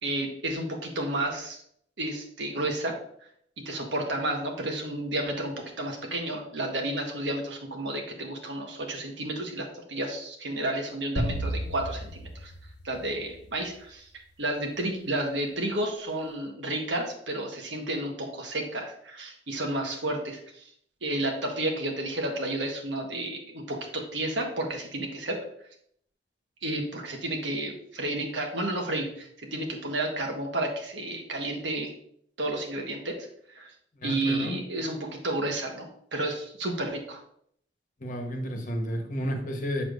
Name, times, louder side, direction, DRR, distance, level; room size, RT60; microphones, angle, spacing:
voice 1, 0.0-1.6 2.0-3.0 3.6-12.5 12.8-14.0 14.4-20.7 21.0-25.4 26.6-31.9 32.4-33.2 33.5-33.7 34.0-37.2, right 1 dB, 75° right, 2 dB, 1.3 m, -31 dB
sound 1, 11.2-13.6, right 1 dB, 65° left, 0.9 m, -33 dB
voice 2, 34.0-34.6 38.0-39.8, equal, 45° left, 3 dB, 1.1 m, -31 dB
7.4 x 6.6 x 2.6 m, 0.67 s
head